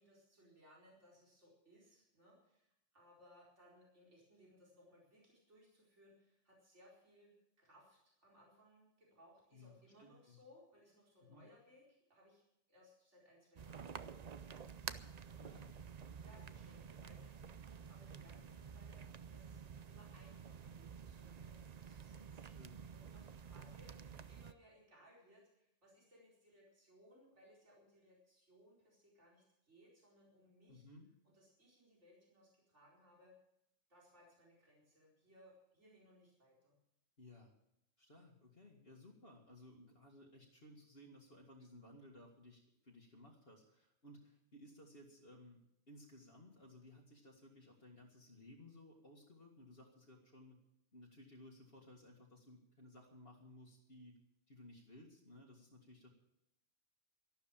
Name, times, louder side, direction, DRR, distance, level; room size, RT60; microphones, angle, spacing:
voice 1, 0.0-15.8 16.2-19.6 19.9-30.8 31.2-33.3 33.9-36.8, equal, 70° right, -4 dB, 4.9 m, -66 dB
voice 2, 10.0-10.4 11.3-11.5 15.4-15.7 22.4-22.8 30.7-31.1 37.2-37.5 38.0-45.6 45.9-50.6 50.9-54.2 54.5-56.1, left 1 dB, 55° left, -2 dB, 2.2 m, -59 dB
sound 1, 13.6-24.5, right 7 dB, 45° right, 0.6 m, -51 dB
13.0 x 12.0 x 7.4 m, 0.80 s
omnidirectional pair, 1.2 m